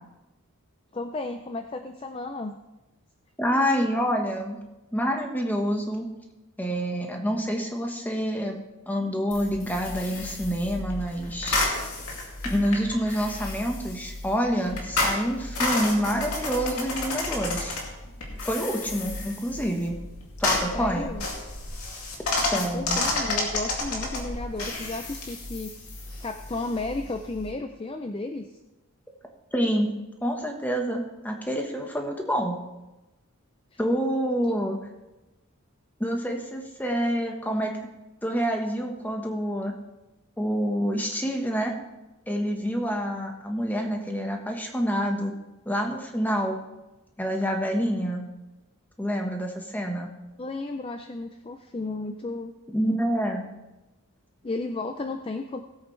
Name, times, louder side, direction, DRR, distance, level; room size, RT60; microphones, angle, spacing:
voice 1, 0.9-2.6 20.7-21.3 22.5-25.8 26.2-28.5 33.7-33.8 50.4-52.5 54.4-55.6, left 2 dB, 25° left, 6 dB, 0.4 m, -33 dB
voice 2, 3.4-4.6 4.9-6.0 6.6-8.6 8.9-11.6 12.4-17.8 18.4-19.9 20.4-21.2 22.4-23.0 29.5-29.9 30.2-32.6 33.8-34.8 36.0-37.9 38.2-39.7 40.4-41.7 42.3-45.3 45.6-46.6 47.2-48.2 49.0-50.1 52.7-53.5, equal, 10° left, 2 dB, 1.2 m, -27 dB
sound 1, 9.3-27.5, left 2 dB, 85° left, 2.4 m, -31 dB
18.0 x 8.2 x 3.2 m, 1.0 s
head